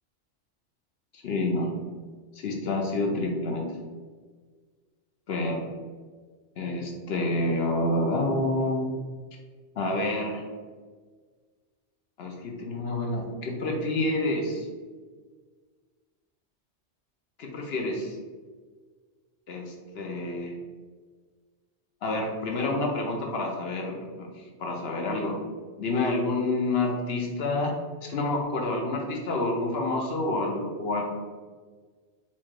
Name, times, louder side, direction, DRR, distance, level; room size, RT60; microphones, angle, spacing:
voice 1, 1.2-1.7 2.3-3.7 5.3-5.7 6.6-9.0 9.8-10.5 12.2-14.7 17.4-18.2 19.5-20.6 22.0-25.4 25.8-31.0, left 2 dB, 65° left, 1 dB, 0.8 m, -28 dB
4.3 x 2.4 x 4.5 m, 1.5 s
omnidirectional pair, 1.2 m